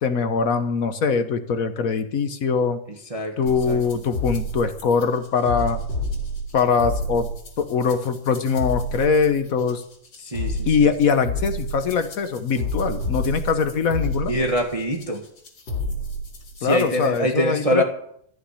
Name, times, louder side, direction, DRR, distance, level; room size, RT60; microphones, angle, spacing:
voice 1, 0.0-2.8 3.4-5.8 6.5-7.3 7.6-9.8 10.7-14.3 16.6-17.8, left 5 dB, 50° left, 10 dB, 1.3 m, -22 dB
sound 1, 3.5-17.2, equal, 70° left, 3.1 m, -30 dB
voice 2, 10.2-10.7 14.3-15.2 16.6-17.8, equal, 20° right, 2 dB, 1.3 m, -24 dB
14.5 x 6.3 x 9.9 m, 0.68 s
omnidirectional pair, 2.2 m